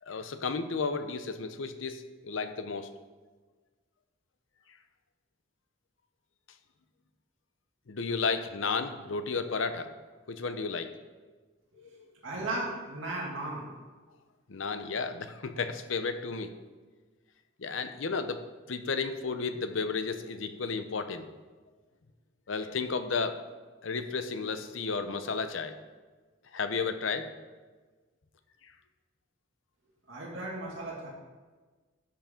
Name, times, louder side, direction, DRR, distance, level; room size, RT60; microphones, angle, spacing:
voice 1, 0.0-2.9 7.9-9.9 10.3-10.9 11.8-12.0 14.5-16.5 17.6-21.3 22.5-23.4 23.8-25.8 26.5-27.4, left 4 dB, 75° left, 9 dB, 0.7 m, -33 dB
voice 2, 12.2-13.6 30.1-31.1, right 2 dB, 80° right, -4 dB, 2.4 m, -35 dB
13.0 x 7.5 x 3.8 m, 1.3 s
head